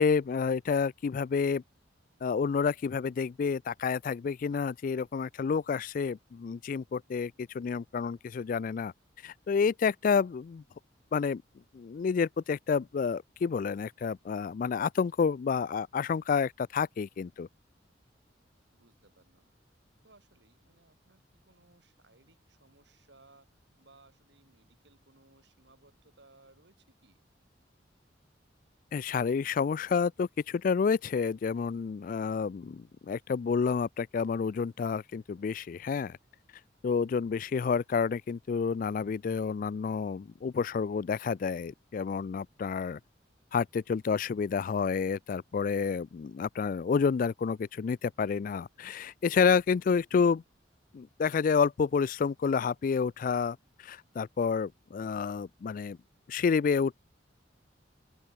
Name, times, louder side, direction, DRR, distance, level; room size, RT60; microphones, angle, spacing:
voice 1, 0.0-1.6 2.2-8.9 9.2-10.6 11.1-11.4 11.7-17.5 28.9-36.2 36.8-43.0 43.5-50.4 50.9-56.0 56.3-56.9, left 5 dB, 45° left, 0.3 m, -29 dB
voice 2, 18.7-19.5 20.0-27.2, right 2 dB, 65° right, 4.7 m, -62 dB
open air
head